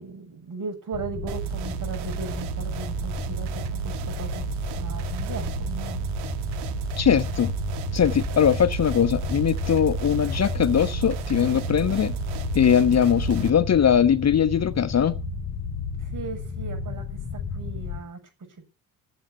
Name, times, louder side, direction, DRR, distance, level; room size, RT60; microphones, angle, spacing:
voice 1, 0.0-4.5 4.7-6.0 16.0-18.2, right 4 dB, 50° right, 7.4 m, -37 dB
sound 1, 0.9-18.0, left 5 dB, 60° left, 3.0 m, -33 dB
sound 2, 1.3-13.5, right 13 dB, 80° right, 1.5 m, -33 dB
voice 2, 7.0-7.5 7.9-12.1 12.5-15.2, left 8 dB, 40° left, 1.1 m, -21 dB
15.5 x 8.0 x 9.4 m
hypercardioid pair, 60°, 41 cm